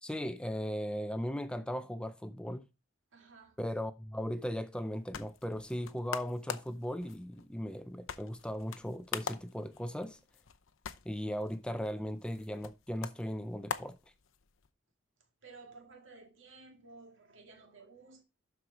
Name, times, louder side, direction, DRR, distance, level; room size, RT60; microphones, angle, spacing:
voice 1, 0.0-2.6 3.6-10.2 11.0-14.0, equal, 5° left, 0.4 m, -37 dB
voice 2, 3.1-3.6 15.4-18.2, right 3 dB, 70° right, 1.9 m, -54 dB
sound 1, 4.7-14.7, left 6 dB, 80° left, 0.7 m, -45 dB
12.0 x 4.8 x 3.8 m
head